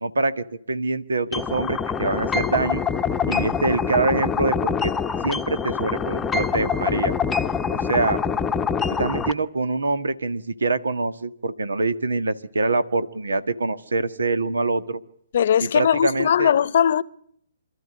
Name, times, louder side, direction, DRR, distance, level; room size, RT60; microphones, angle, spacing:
voice 1, 0.0-2.8 3.3-4.9 5.2-7.1 7.9-8.2 9.0-15.0 15.6-16.5, right 3 dB, 85° right, 1.7 m, -24 dB
sound 1, 1.3-9.3, left 6 dB, 10° left, 0.9 m, -25 dB
voice 2, 15.3-17.0, left 9 dB, 55° left, 0.8 m, -19 dB
27.0 x 13.5 x 9.8 m
hypercardioid pair, 135°, 0 cm